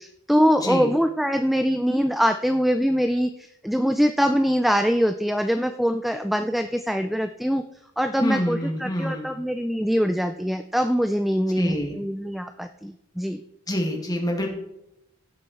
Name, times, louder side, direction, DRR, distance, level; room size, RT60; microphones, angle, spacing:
voice 1, 0.0-3.3 3.6-7.6 8.0-13.4, equal, ahead, 8 dB, 0.3 m, -23 dB
voice 2, 8.2-9.4 11.6-12.0 13.7-14.5, equal, 15° left, 1 dB, 2.0 m, -26 dB
16.0 x 6.7 x 4.2 m, 0.84 s
head